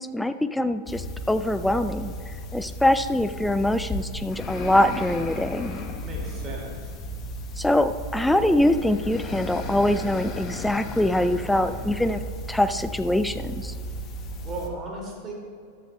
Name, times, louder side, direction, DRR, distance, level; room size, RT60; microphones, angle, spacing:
voice 1, 0.0-2.1 2.5-5.8 7.6-12.2 12.5-13.7, left 1 dB, 5° left, 10 dB, 0.4 m, -23 dB
sound 1, 0.9-14.7, equal, 30° left, 1.1 m, -35 dB
voice 2, 6.0-6.9 14.4-15.3, right 2 dB, 25° right, -1 dB, 2.3 m, -36 dB
14.0 x 11.5 x 2.3 m, 2.2 s
figure-of-eight pair, 90°, 0 cm